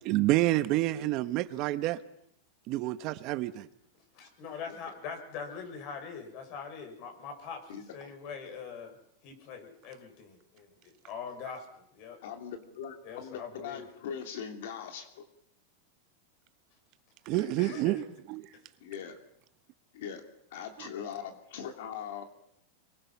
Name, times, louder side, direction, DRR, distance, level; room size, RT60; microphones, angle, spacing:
voice 1, 0.0-2.0 2.7-3.7 17.3-18.5 20.8-20.9, right 16 dB, 45° right, 1.0 m, -28 dB
voice 2, 4.1-9.0 9.2-12.2 13.0-13.8 17.6-18.0, left 6 dB, 45° left, 6.3 m, -43 dB
voice 3, 12.2-15.3 17.3-17.5 18.8-19.1 19.9-20.2 20.5-22.2, left 8 dB, 70° left, 2.9 m, -41 dB
26.0 x 23.0 x 5.9 m
supercardioid pair, 145°, 0 cm